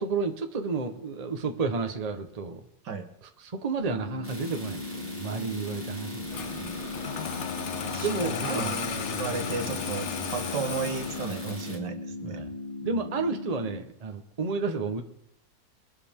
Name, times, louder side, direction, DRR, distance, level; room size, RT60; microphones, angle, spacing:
voice 1, 0.0-2.7 3.4-6.6 8.0-8.6 8.9-9.0 12.2-12.5 12.8-15.0, right 4 dB, 25° right, 5 dB, 1.0 m, -31 dB
sound 1, 3.8-13.8, left 2 dB, 25° left, 3.6 m, -38 dB
sound 2, 4.2-11.8, equal, 5° left, 2.0 m, -43 dB
Engine starting, 6.3-11.7, left 7 dB, 50° left, 1.0 m, -34 dB
voice 2, 6.4-6.8 7.8-12.4 12.9-13.0, right 5 dB, 75° right, 7 dB, 1.9 m, -35 dB
22.5 x 12.0 x 3.7 m, 0.75 s
omnidirectional pair, 1.9 m